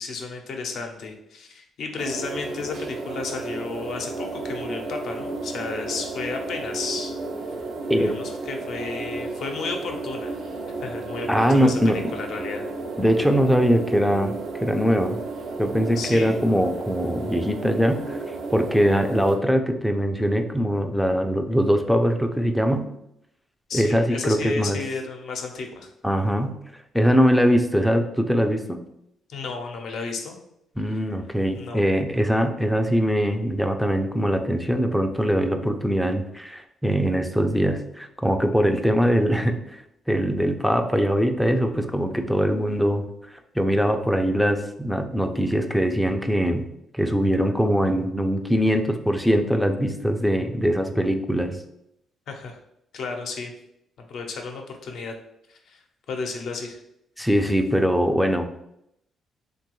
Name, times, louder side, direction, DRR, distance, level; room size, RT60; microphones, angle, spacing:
voice 1, 0.0-7.1 7.9-10.3 10.8-11.8 12.1-12.7 16.0-16.4 23.7-25.9 29.3-30.4 30.9-31.1 31.5-31.9 52.3-52.6 52.9-53.5 54.1-55.1 55.5-55.8 56.1-56.8, left 4 dB, 70° left, 3 dB, 0.5 m, -33 dB
sound 1, 2.0-19.3, right 3 dB, 65° right, 0.4 m, -33 dB
voice 2, 11.3-12.0 13.0-14.3 14.6-15.2 15.6-18.2 18.5-22.9 23.7-24.8 26.0-26.6 26.9-28.8 30.8-39.8 40.1-46.7 46.9-51.6 57.2-58.5, equal, ahead, 6 dB, 0.3 m, -22 dB
3.0 x 2.2 x 2.9 m, 0.79 s
cardioid pair, 90°, 0 cm